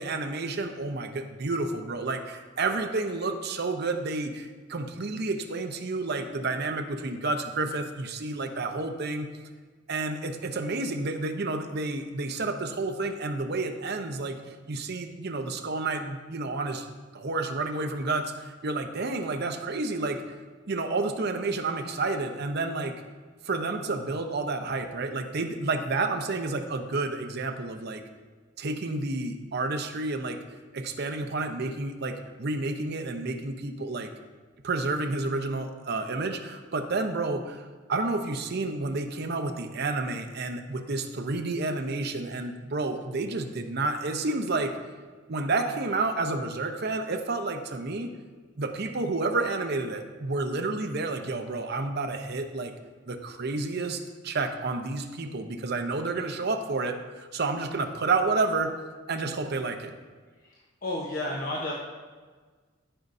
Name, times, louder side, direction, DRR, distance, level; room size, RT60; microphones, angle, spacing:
voice 1, 0.0-9.3 9.9-14.4 14.7-16.8 17.1-20.2 20.7-22.9 23.4-28.0 28.6-30.4 30.7-34.1 34.6-44.8 45.3-48.1 48.6-52.7 53.1-58.7 59.1-59.9, right 3 dB, 55° right, 6 dB, 0.7 m, -30 dB
voice 2, 60.8-61.8, left 1 dB, 45° left, -3 dB, 0.9 m, -31 dB
14.5 x 5.4 x 2.6 m, 1.4 s
head